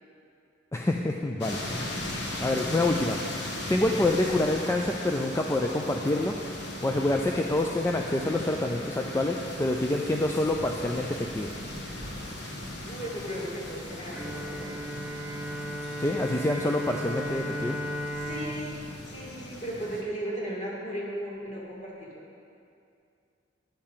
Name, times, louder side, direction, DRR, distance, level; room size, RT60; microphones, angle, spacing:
voice 1, 0.7-1.9 2.4-3.2 3.7-6.3 6.8-11.5 16.0-17.8, left 2 dB, 15° left, 1 dB, 0.4 m, -27 dB
sound 1, 1.4-20.0, left 1 dB, 65° left, 1.2 m, -38 dB
voice 2, 12.8-15.0 18.1-22.3, right 1 dB, 40° left, -6 dB, 2.4 m, -36 dB
Bowed string instrument, 14.1-20.3, equal, 5° right, 0.8 m, -36 dB
10.5 x 6.8 x 5.6 m, 2.5 s
head